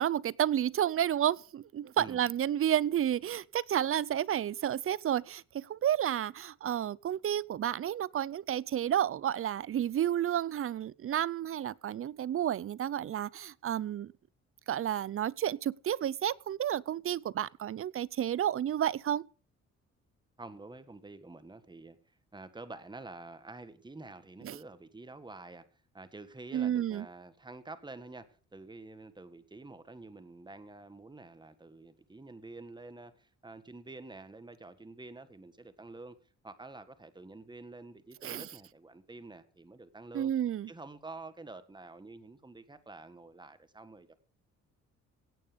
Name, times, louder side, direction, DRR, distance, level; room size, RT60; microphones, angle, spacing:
voice 1, 0.0-14.1 14.7-19.3 24.4-24.6 26.5-27.1 38.2-38.5 40.1-40.7, right 10 dB, 45° right, 0.6 m, -31 dB
voice 2, 20.4-22.0 22.3-25.6 25.9-36.2 36.4-40.3 40.7-44.1, right 2 dB, 15° right, 1.7 m, -48 dB
17.5 x 8.6 x 5.2 m
cardioid pair, 90°, 30 cm